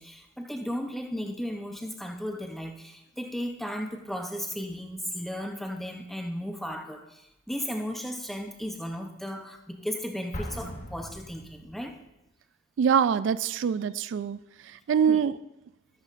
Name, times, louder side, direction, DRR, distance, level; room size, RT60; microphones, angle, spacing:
voice 1, 0.0-12.0 15.1-15.2, equal, ahead, 4 dB, 0.7 m, -35 dB
Explosion, 10.3-12.1, equal, 40° left, 1.0 m, -39 dB
voice 2, 12.8-14.4 14.7-15.4, right 7 dB, 75° right, 15 dB, 0.3 m, -24 dB
10.5 x 10.5 x 2.5 m, 0.90 s
head